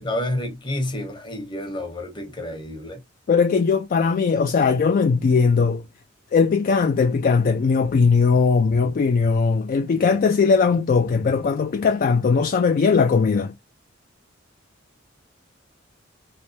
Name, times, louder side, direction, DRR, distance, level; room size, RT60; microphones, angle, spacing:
voice 1, 0.0-3.0, left 1 dB, 25° left, 0.9 m, -29 dB
voice 2, 3.3-5.8 6.3-13.5, left 5 dB, 45° left, 0.3 m, -19 dB
3.3 x 3.1 x 2.7 m
head